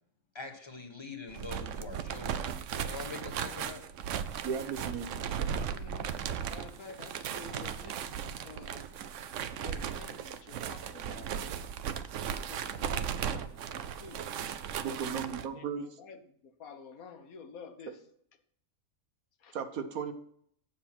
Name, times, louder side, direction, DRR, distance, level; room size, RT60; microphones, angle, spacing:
voice 1, 0.3-3.8, left 4 dB, 20° left, 1.2 m, -44 dB
sound 1, 1.3-15.5, right 8 dB, 65° right, 0.9 m, -37 dB
voice 2, 4.4-5.1 14.8-15.9 19.5-20.1, right 6 dB, 85° right, 1.5 m, -35 dB
voice 3, 5.7-6.2 6.4-8.9 9.5-11.4 12.2-14.2 14.7-18.0 19.4-19.6, left 5 dB, 90° left, 1.5 m, -51 dB
7.9 x 7.4 x 5.9 m
omnidirectional pair, 1.4 m